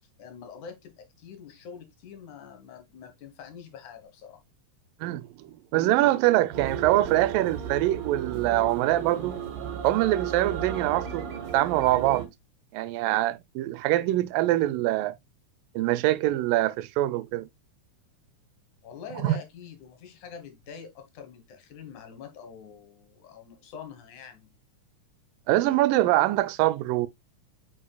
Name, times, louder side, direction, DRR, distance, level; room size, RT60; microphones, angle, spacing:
voice 1, 0.0-4.4 18.8-24.5, left 7 dB, 65° left, 2.5 m, -45 dB
voice 2, 5.0-9.4 9.8-11.3 11.5-12.3 12.7-15.1 15.8-17.5 19.2-19.4 25.5-27.1, right 16 dB, 85° right, 2.3 m, -24 dB
sound 1, 6.5-12.3, right 8 dB, 60° right, 2.5 m, -34 dB
8.6 x 5.3 x 2.3 m
omnidirectional pair, 3.8 m